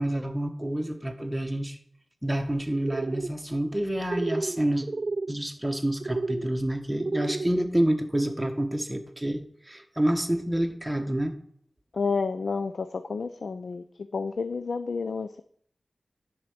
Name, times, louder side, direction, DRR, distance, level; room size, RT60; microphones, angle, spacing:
voice 1, 0.0-1.8 2.2-4.9 5.3-11.3, right 1 dB, 10° right, 4 dB, 1.4 m, -28 dB
sound 1, 2.8-3.3 4.1-4.6 4.8-5.3 6.0-6.5 7.0-7.5, right 3 dB, 50° right, 0.3 m, -31 dB
voice 2, 11.9-13.8 14.1-15.4, left 4 dB, 75° left, 10 dB, 0.5 m, -30 dB
10.5 x 4.6 x 7.9 m, 0.64 s
wide cardioid pair, 90°, 0 cm